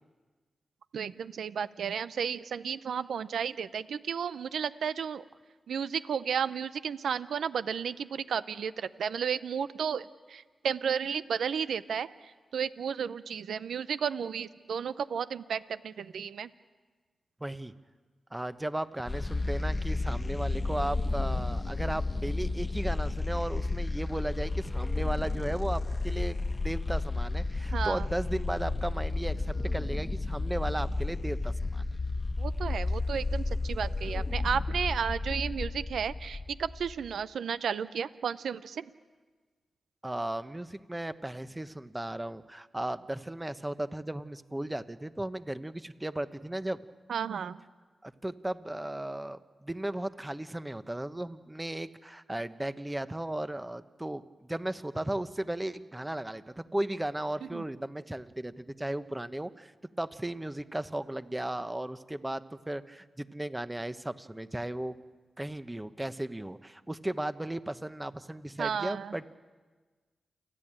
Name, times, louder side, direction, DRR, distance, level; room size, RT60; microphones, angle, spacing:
voice 1, 0.9-5.2 5.7-16.5 27.7-28.1 32.4-38.9 47.1-47.6 57.5-57.6 68.6-69.1, right 7 dB, 80° right, 15 dB, 0.6 m, -33 dB
voice 2, 17.4-17.7 18.3-26.4 26.6-31.8 40.0-46.8 48.0-59.7 60.0-65.0 65.4-69.4, right 1 dB, 15° right, 12 dB, 1.1 m, -35 dB
sound 1, 19.1-37.1, left 2 dB, 35° left, 1.3 m, -32 dB
29.0 x 10.5 x 8.9 m, 1.4 s
supercardioid pair, 45°, 0 cm